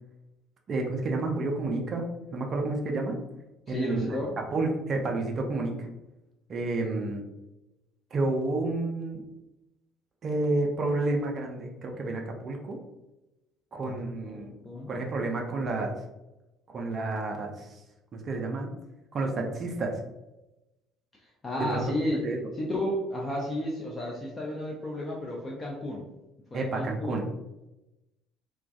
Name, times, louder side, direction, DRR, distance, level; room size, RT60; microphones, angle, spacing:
voice 1, 0.7-2.1 2.3-3.2 3.7-4.2 4.5-5.9 6.5-7.2 8.1-9.2 10.2-12.8 13.7-14.5 14.9-16.0 16.7-17.8 18.1-18.7 19.1-20.0 21.6-21.9 22.2-22.5 26.5-27.2, right 2 dB, 40° right, 1 dB, 0.4 m, -30 dB
voice 2, 3.7-4.3 13.9-14.9 21.4-22.3 22.6-26.1 26.5-27.2, left 1 dB, 25° left, -3 dB, 0.4 m, -32 dB
2.2 x 2.2 x 2.5 m, 0.98 s
figure-of-eight pair, 55°, 0 cm